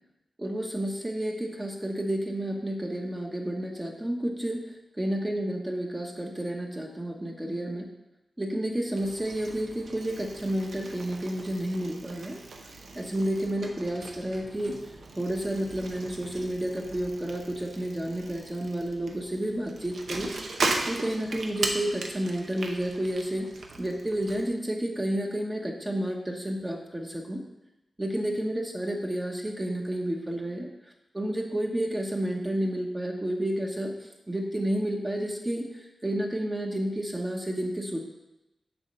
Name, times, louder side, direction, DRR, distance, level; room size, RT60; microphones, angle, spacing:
voice 1, 0.4-4.6 5.0-7.9 8.4-12.4 12.9-14.8 15.2-20.6 20.9-23.5 23.8-27.4 28.0-30.7 31.1-33.9 34.3-35.7 36.0-38.0, right 1 dB, 15° right, 0 dB, 1.0 m, -30 dB
Bicycle, 8.9-24.4, right 3 dB, 80° right, 0.9 m, -38 dB
7.1 x 4.2 x 6.7 m, 0.94 s
wide cardioid pair, 105°, 0 cm